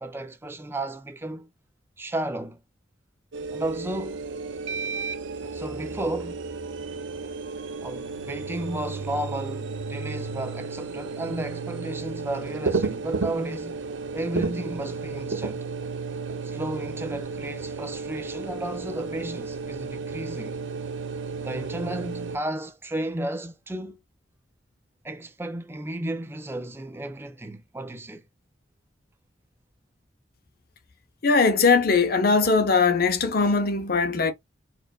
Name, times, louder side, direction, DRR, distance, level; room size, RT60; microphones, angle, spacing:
voice 1, 0.0-1.5 2.0-2.6 3.5-4.3 5.4-6.4 7.8-13.8 14.1-15.7 16.4-20.6 21.4-24.0 25.0-28.2, right 1 dB, 10° right, 0.4 m, -33 dB
sound 1, 3.3-22.4, right 4 dB, 75° right, 0.5 m, -33 dB
voice 2, 31.2-34.3, left 4 dB, 50° left, 0.6 m, -20 dB
4.3 x 2.5 x 2.3 m
head